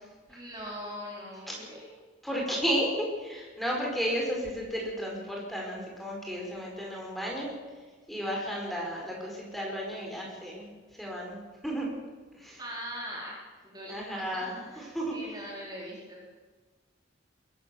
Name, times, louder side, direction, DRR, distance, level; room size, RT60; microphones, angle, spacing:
voice 1, 0.3-1.8 12.6-13.3 13.6-14.0 14.3-16.4, equal, 20° right, -4 dB, 4.2 m, -41 dB
voice 2, 2.2-2.9 3.2-7.5 8.1-10.7 11.0-11.9 12.4-12.6 13.9-14.6 14.9-15.1, equal, ahead, -2 dB, 5.4 m, -33 dB
22.0 x 16.0 x 7.3 m, 1.4 s
head